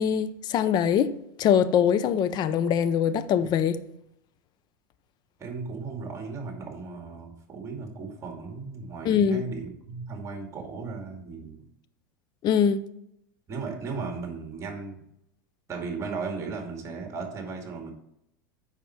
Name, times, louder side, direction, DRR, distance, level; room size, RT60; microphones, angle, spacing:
voice 1, 0.0-3.8 9.0-9.5 12.4-12.8, left 8 dB, 40° left, 0.5 m, -23 dB
voice 2, 5.4-11.6 13.5-15.0 15.7-17.9, right 4 dB, 25° right, 2.3 m, -36 dB
7.2 x 5.7 x 4.5 m
supercardioid pair, 115°, 12 cm